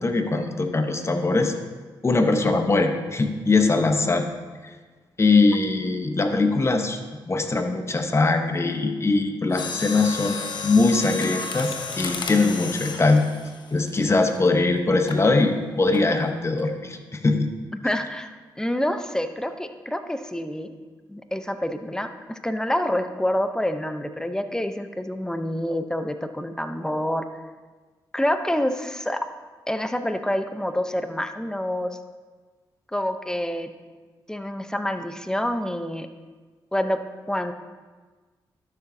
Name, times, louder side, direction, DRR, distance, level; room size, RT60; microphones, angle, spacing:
voice 1, 0.0-1.5 2.0-4.2 4.6-4.7 5.2-7.0 7.3-13.3 13.7-17.5, left 3 dB, 30° left, 6 dB, 1.0 m, -21 dB
Mechanisms, 9.5-14.5 15.1-15.3 15.9-16.3 16.6-16.7, left 4 dB, 65° left, 0.9 m, -33 dB
voice 2, 17.8-20.7 21.1-27.2 28.1-29.3 29.7-32.0 32.9-33.7 34.3-36.1 36.7-37.0 37.3-37.5, left 1 dB, 5° left, 8 dB, 0.7 m, -27 dB
12.0 x 6.9 x 2.8 m, 1.4 s
supercardioid pair, 50°, 9 cm